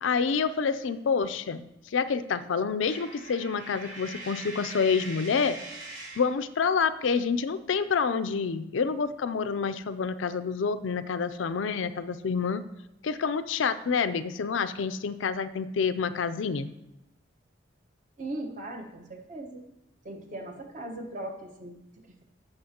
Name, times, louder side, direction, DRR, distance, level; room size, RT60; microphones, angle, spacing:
voice 1, 0.0-5.6 6.2-12.6 13.0-16.7, left 5 dB, 80° left, 11 dB, 0.5 m, -28 dB
Coin (dropping), 2.8-6.4, right 2 dB, 90° right, 2.5 m, -42 dB
voice 2, 18.2-19.7 20.0-22.2, right 1 dB, 40° right, 2 dB, 1.1 m, -39 dB
15.5 x 6.0 x 2.8 m, 0.87 s
head